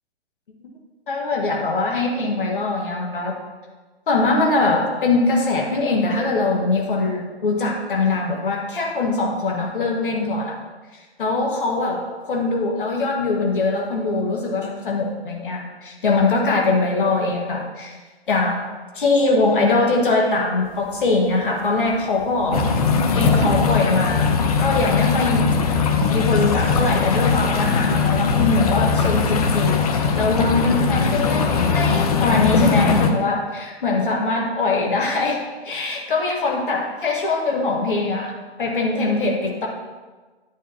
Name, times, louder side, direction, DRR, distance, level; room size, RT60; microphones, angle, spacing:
voice 1, 1.1-3.4 4.1-10.6 10.9-18.0 18.3-18.7 18.9-22.6 23.1-24.3 24.6-25.5 26.1-39.7, left 3 dB, 50° left, 0 dB, 1.8 m, -22 dB
sound 1, 20.6-26.5, right 3 dB, 45° right, 1.4 m, -34 dB
sound 2, 22.5-33.1, left 5 dB, 35° left, 0.7 m, -20 dB
9.9 x 8.9 x 2.9 m, 1.3 s
figure-of-eight pair, 130°, 33 cm